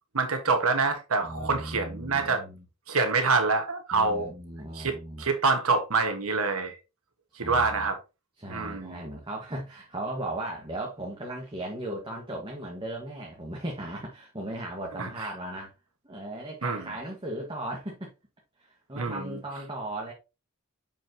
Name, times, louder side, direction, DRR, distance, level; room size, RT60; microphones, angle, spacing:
voice 1, 0.1-2.4 2.9-4.3 4.7-6.7 7.4-8.0 8.5-9.0 15.0-15.1 16.6-16.8 18.9-19.4, right 4 dB, 70° right, 1.6 m, -26 dB
voice 2, 1.2-2.6 3.9-5.2 7.3-7.9 8.4-15.7 16.0-18.1 18.6-20.1, right 1 dB, 20° right, 1.6 m, -37 dB
7.1 x 5.8 x 2.9 m
head